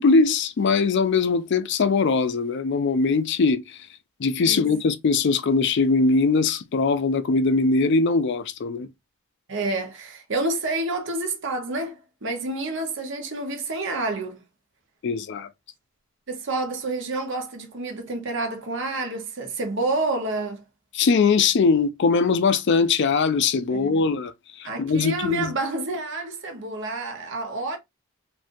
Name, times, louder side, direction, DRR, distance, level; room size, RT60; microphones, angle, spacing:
voice 1, 0.0-3.8 4.2-8.9 15.0-15.5 20.9-24.3 24.6-25.5, left 4 dB, 60° left, 0.4 m, -21 dB
voice 2, 9.5-14.4 16.3-20.6 23.7-24.0 24.6-27.8, right 2 dB, 65° right, 1.0 m, -29 dB
3.6 x 2.6 x 2.6 m
head